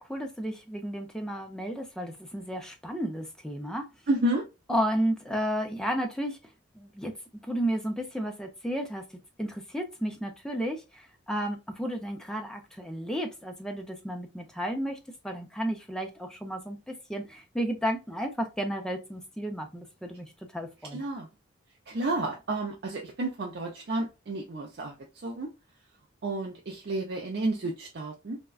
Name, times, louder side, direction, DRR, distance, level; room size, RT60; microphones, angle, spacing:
voice 1, 0.0-3.9 4.7-6.4 6.8-7.1 7.5-9.0 9.4-15.0 15.2-20.3 20.5-21.0, equal, 5° left, 0.4 m, -32 dB
voice 2, 4.1-4.4 20.9-21.3 21.9-25.5 26.2-28.4, right 2 dB, 55° right, 0.5 m, -31 dB
3.5 x 2.2 x 2.3 m
head